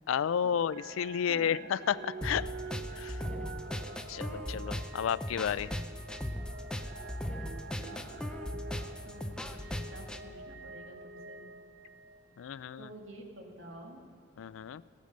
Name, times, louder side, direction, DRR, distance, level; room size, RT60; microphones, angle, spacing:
voice 1, 0.1-2.5 2.9-3.2 4.1-5.7 12.4-12.9 14.4-14.8, left 8 dB, 75° left, 17 dB, 0.3 m, -32 dB
sound 1, 0.7-12.6 13.2-13.3, right 3 dB, 50° right, 0.6 m, -47 dB
voice 2, 1.3-1.7 7.8-8.3 8.7-11.4 12.8-14.0, right 1 dB, 75° right, 1 dB, 2.0 m, -50 dB
sound 2, 2.2-10.2, left 1 dB, 5° left, 0.4 m, -38 dB
16.5 x 8.3 x 6.6 m, 2.4 s
head